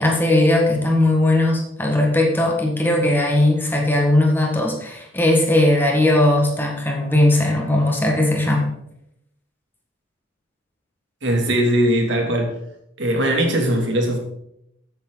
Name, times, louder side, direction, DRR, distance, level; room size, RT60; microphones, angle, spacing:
voice 1, 0.0-8.7, left 1 dB, 10° left, 0 dB, 1.8 m, -18 dB
voice 2, 11.2-12.6 13.0-14.2, right 1 dB, 60° right, 1 dB, 2.7 m, -20 dB
14.5 x 8.4 x 4.0 m, 0.79 s
head